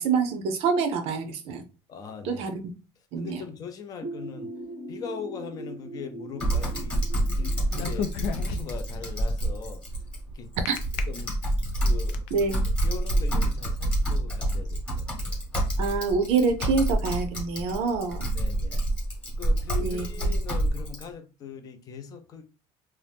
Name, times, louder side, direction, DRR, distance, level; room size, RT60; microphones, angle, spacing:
voice 1, 0.0-1.6 2.2-2.7 3.1-3.4 10.7-10.8 12.3-12.7 15.8-18.3 19.8-20.0, right 5 dB, 55° right, 0.5 m, -26 dB
voice 2, 1.9-2.5 3.2-4.5 4.9-8.1 8.4-9.8 10.3-10.5 11.1-11.4 11.8-12.2 12.8-15.4 18.3-18.8 19.4-22.4, left 6 dB, 30° left, 0.4 m, -40 dB
sound 1, 4.0-9.6, right 1 dB, 45° left, 0.9 m, -41 dB
Typing, 6.4-21.0, right 1 dB, 10° left, 0.9 m, -27 dB
sound 2, 7.7-8.9 10.7-11.0 11.6-12.3, left 6 dB, 90° left, 0.4 m, -31 dB
2.7 x 2.0 x 3.3 m
cardioid pair, 170°, 12 cm